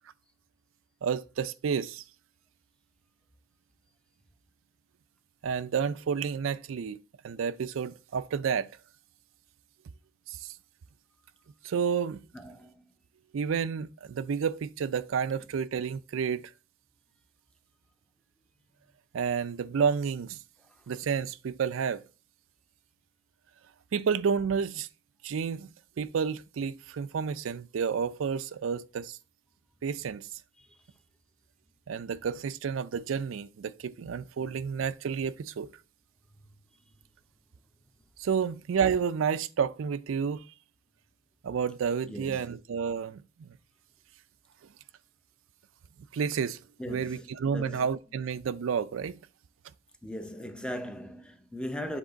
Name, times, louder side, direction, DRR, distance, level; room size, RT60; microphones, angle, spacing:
voice 1, 1.0-2.0 5.4-7.0 7.2-8.7 10.3-10.5 11.6-12.2 13.3-16.5 19.1-20.4 20.9-22.0 23.9-24.9 25.2-25.7 26.0-29.2 29.8-30.3 31.9-35.7 38.2-40.4 41.4-43.5 46.1-46.6 46.9-49.2, right 6 dB, 90° right, 0.4 m, -30 dB
voice 2, 12.3-12.9 30.6-30.7 42.1-42.5 46.8-47.8 50.0-52.0, equal, 5° left, 0.5 m, -39 dB
7.4 x 3.5 x 3.9 m
head